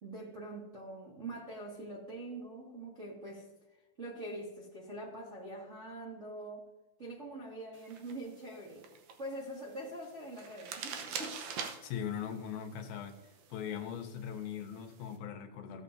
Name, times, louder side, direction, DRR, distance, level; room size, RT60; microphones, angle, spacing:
voice 1, 0.0-3.5 4.0-6.7 7.0-8.8 9.2-11.4, right 1 dB, 30° right, -5 dB, 1.4 m, -44 dB
sound 1, 7.7-15.2, right 6 dB, 75° right, 1.8 m, -46 dB
voice 2, 11.8-13.2 13.5-15.8, left 8 dB, 80° left, 5 dB, 2.9 m, -40 dB
15.5 x 8.1 x 2.7 m, 1.1 s
omnidirectional pair, 4.2 m